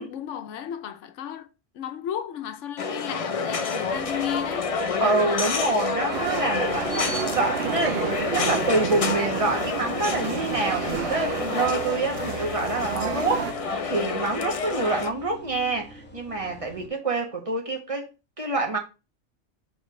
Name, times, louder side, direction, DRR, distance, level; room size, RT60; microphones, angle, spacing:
voice 1, 0.0-1.5 1.7-4.7, left 10 dB, 90° left, 1.0 m, -34 dB
sound 1, 2.8-15.1, left 4 dB, 40° left, 0.5 m, -29 dB
sound 2, 3.9-16.9, equal, 10° left, 0.8 m, -45 dB
voice 2, 5.0-18.1 18.4-18.8, right 3 dB, 30° right, 1.4 m, -27 dB
sound 3, 6.1-13.5, right 9 dB, 65° right, 0.8 m, -31 dB
4.9 x 3.6 x 5.3 m
omnidirectional pair, 1.2 m